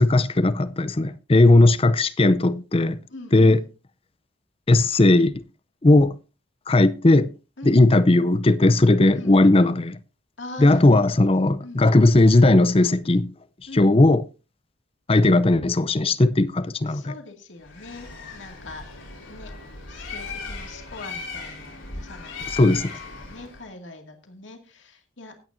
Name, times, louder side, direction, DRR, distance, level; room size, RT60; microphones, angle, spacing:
voice 1, 0.0-3.0 3.3-3.6 4.7-5.4 5.8-6.1 6.7-7.3 7.6-10.0 10.6-13.3 13.7-14.2 15.1-17.1 22.5-22.9, left 2 dB, 30° left, 0.6 m, -17 dB
voice 2, 3.1-3.6 7.6-7.8 9.1-9.3 10.4-11.3 11.6-11.8 13.7-13.9 16.9-18.8 19.3-19.5 19.9-25.5, left 2 dB, 70° left, 2.2 m, -42 dB
Bird, 17.6-23.7, left 3 dB, 90° left, 4.3 m, -37 dB
17.5 x 9.1 x 2.7 m
head